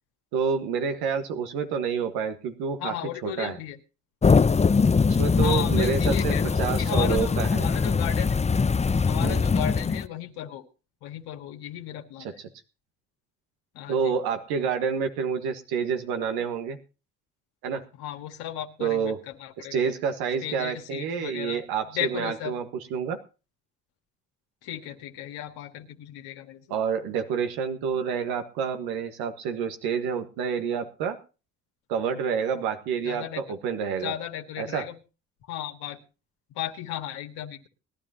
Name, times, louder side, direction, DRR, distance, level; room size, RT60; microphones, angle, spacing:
voice 1, 0.3-2.9 3.2-3.6 5.2-7.7 9.2-9.4 12.2-12.3 13.9-16.8 17.6-17.9 18.8-19.2 19.6-23.2 26.7-31.2 31.9-34.1 34.6-34.9, right 6 dB, 80° right, 7 dB, 1.5 m, -28 dB
voice 2, 2.8-3.8 5.3-8.4 9.1-10.6 11.0-12.3 13.7-14.2 18.0-19.8 20.4-21.6 21.9-22.6 24.6-26.7 33.0-33.4 34.0-35.0 35.4-36.0 36.5-37.7, left 12 dB, 75° left, 3 dB, 1.8 m, -35 dB
sound 1, 4.2-10.1, left 5 dB, 20° left, 0.6 m, -22 dB
20.5 x 12.5 x 2.9 m, 0.33 s
hypercardioid pair, 45°, 37 cm